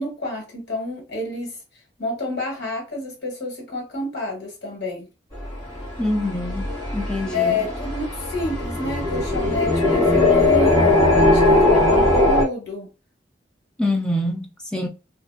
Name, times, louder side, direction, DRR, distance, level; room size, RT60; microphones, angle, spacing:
voice 1, 0.0-1.5 2.0-5.1 7.3-12.9, left 2 dB, 80° left, 1.4 m, -29 dB
sound 1, 5.3-12.4, left 2 dB, 25° left, 1.2 m, -19 dB
voice 2, 6.0-6.7 6.9-7.6 13.8-14.9, left 1 dB, 5° left, 0.4 m, -25 dB
2.5 x 2.3 x 2.3 m
head